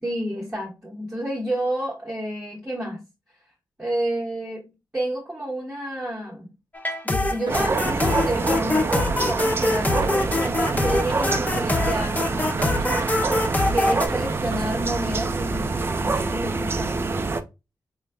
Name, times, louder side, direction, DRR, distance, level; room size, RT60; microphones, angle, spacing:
voice 1, 0.0-3.0 3.8-6.5 7.0-13.0 13.7-17.3, right 1 dB, 10° right, -4 dB, 1.1 m, -30 dB
sound 1, 6.7-14.1, left 2 dB, 20° left, 0.5 m, -24 dB
sound 2, 7.5-17.4, right 3 dB, 30° right, 0.4 m, -26 dB
sound 3, 7.5-16.6, right 4 dB, 75° right, 0.6 m, -38 dB
4.4 x 3.1 x 2.2 m, 0.26 s
wide cardioid pair, 120°, 8 cm